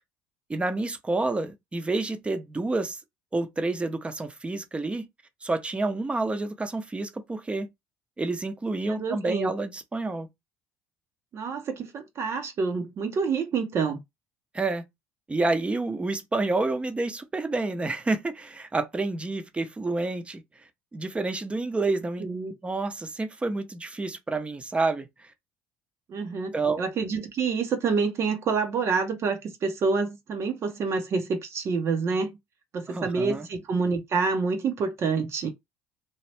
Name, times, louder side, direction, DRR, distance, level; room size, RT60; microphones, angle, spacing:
voice 1, 0.5-3.0 3.3-5.1 5.4-7.7 8.2-10.3 14.5-14.8 15.3-20.4 20.9-22.3 22.6-25.3 26.5-26.8 32.9-33.5, right 3 dB, 20° right, 0.8 m, -29 dB
voice 2, 8.9-9.5 11.3-14.0 22.2-22.5 26.1-32.4 32.7-35.5, right 4 dB, 50° right, 0.9 m, -27 dB
2.8 x 2.4 x 3.4 m
supercardioid pair, 75°, 6 cm